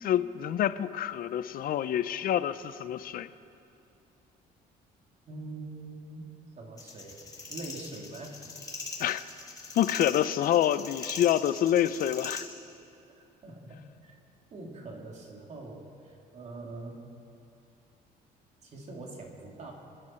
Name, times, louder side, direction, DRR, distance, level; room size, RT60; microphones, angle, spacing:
voice 1, 0.0-3.3 9.0-9.2 9.7-12.4, left 11 dB, 60° left, 14 dB, 0.6 m, -27 dB
voice 2, 5.3-6.3 6.6-7.2 7.5-8.5 13.1-14.1 14.5-17.1 18.6-19.7, right 2 dB, 40° right, 0 dB, 2.7 m, -44 dB
sound 1, 6.8-12.4, left 3 dB, 20° left, 2.3 m, -41 dB
27.5 x 10.5 x 4.4 m, 2.6 s
cardioid pair, 110°, 17 cm